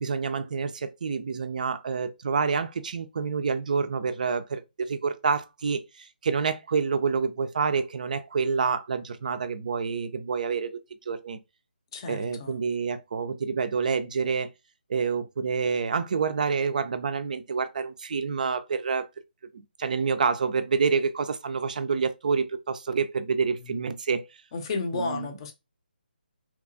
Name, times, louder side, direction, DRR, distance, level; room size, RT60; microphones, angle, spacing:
voice 1, 0.0-11.4 12.1-14.5 14.9-19.1 19.5-24.2 24.9-25.3, right 5 dB, 50° right, 0.3 m, -28 dB
voice 2, 11.9-12.6 23.6-23.7 24.5-25.5, left 3 dB, 30° left, 0.6 m, -32 dB
2.8 x 2.3 x 2.5 m
figure-of-eight pair, 155°, 6 cm